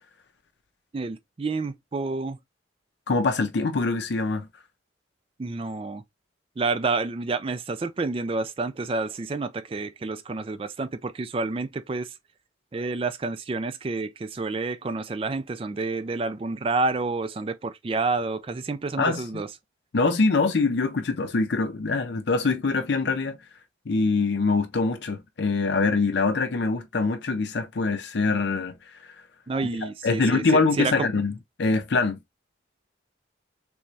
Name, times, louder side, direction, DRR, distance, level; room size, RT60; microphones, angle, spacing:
voice 1, 0.9-2.4 5.4-6.0 6.6-12.1 12.7-19.5 29.5-30.4 30.8-31.1, right 3 dB, 30° right, 0.3 m, -29 dB
voice 2, 3.1-4.5 19.0-19.4 19.9-23.4 23.9-29.0 29.8-32.2, left 3 dB, 65° left, 0.5 m, -24 dB
3.4 x 3.1 x 2.7 m
head